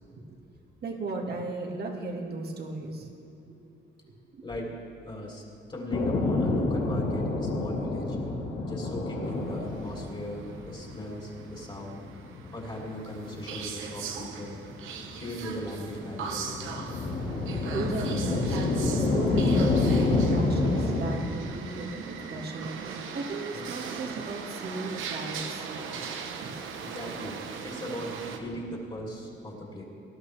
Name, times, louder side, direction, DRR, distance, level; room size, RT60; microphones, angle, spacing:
voice 1, 0.8-3.1 4.1-4.5 16.8-17.0 17.6-25.7 26.3-26.5 28.4-28.5, right 2 dB, 55° right, 1 dB, 1.9 m, -36 dB
voice 2, 4.4-5.4 5.7-8.2 8.7-12.0 12.5-14.6 15.2-16.5 26.8-29.8, equal, 25° left, -3 dB, 3.3 m, -38 dB
sound 1, 5.9-21.2, left 2 dB, 65° left, 1.8 m, -28 dB
sound 2, 9.2-28.4, right 6 dB, 85° right, 1.0 m, -40 dB
19.5 x 11.0 x 3.4 m, 2.6 s
cardioid pair, 90°, 20 cm